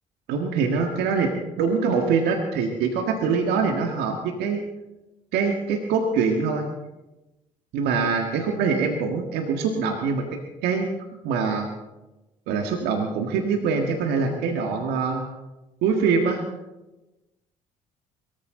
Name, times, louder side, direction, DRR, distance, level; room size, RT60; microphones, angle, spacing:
voice 1, 0.3-1.3 1.6-4.6 5.3-6.7 7.7-10.9 11.2-11.7 12.5-15.2 15.8-16.5, right 5 dB, 75° right, 3 dB, 1.7 m, -24 dB
22.0 x 14.5 x 3.9 m, 1.0 s
hypercardioid pair, 60°, 17 cm